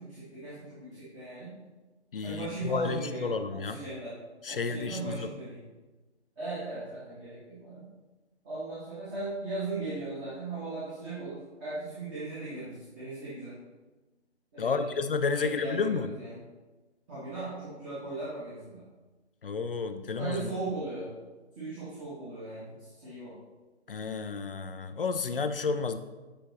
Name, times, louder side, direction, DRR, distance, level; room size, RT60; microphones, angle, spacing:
voice 1, 0.0-1.5 2.2-4.1 4.5-5.6 6.4-7.9 8.4-13.6 14.5-15.0 15.2-16.4 17.1-18.8 20.2-21.1 21.5-23.3, right 3 dB, 20° right, -11 dB, 1.7 m, -38 dB
voice 2, 2.1-3.8 4.4-5.3 14.6-16.1 19.4-20.5 23.9-26.0, left 5 dB, 55° left, 10 dB, 0.5 m, -31 dB
8.5 x 5.0 x 3.0 m, 1.2 s
figure-of-eight pair, 145°, 34 cm